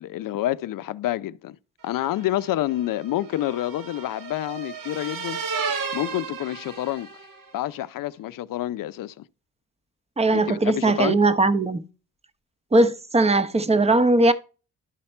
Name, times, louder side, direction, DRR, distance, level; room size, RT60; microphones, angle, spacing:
voice 1, 0.0-1.6 1.8-5.4 5.9-7.1 7.5-9.2 10.3-11.2, left 14 dB, 70° left, 0.6 m, -28 dB
sound 1, 2.1-7.5, right 5 dB, 70° right, 1.6 m, -34 dB
voice 2, 10.2-11.8 12.7-14.3, right 2 dB, 20° right, 0.8 m, -19 dB
11.5 x 5.8 x 4.3 m
cardioid pair, 110°, 34 cm